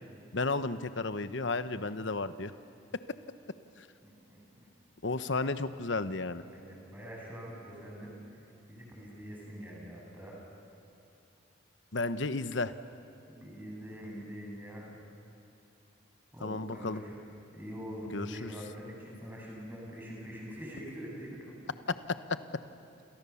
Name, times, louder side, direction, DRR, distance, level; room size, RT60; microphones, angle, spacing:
voice 1, 0.3-2.5 5.0-6.4 11.9-12.7 16.4-17.0 18.1-18.5 22.3-22.4, left 3 dB, 65° left, 12 dB, 1.0 m, -33 dB
voice 2, 4.0-4.7 6.4-10.4 13.3-15.0 16.3-17.2 17.5-21.7, equal, 10° right, -3 dB, 7.4 m, -44 dB
29.0 x 28.5 x 7.2 m, 2.9 s
head